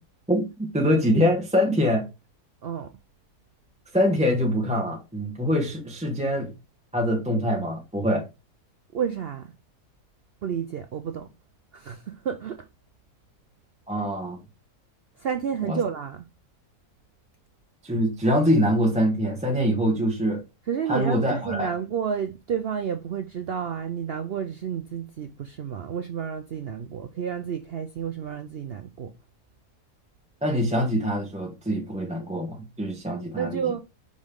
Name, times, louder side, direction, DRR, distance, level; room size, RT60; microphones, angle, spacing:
voice 1, 0.3-2.1 3.9-6.5 6.9-8.3 13.9-14.4 15.7-15.8 17.8-20.4 20.9-21.7 30.4-33.7, equal, 5° right, 0.8 m, -24 dB
voice 2, 2.6-2.9 8.9-9.5 10.4-11.3 11.7-12.6 15.2-16.3 20.7-29.1 33.1-33.8, right 8 dB, 90° right, 0.5 m, -31 dB
5.2 x 5.2 x 3.7 m
omnidirectional pair, 1.7 m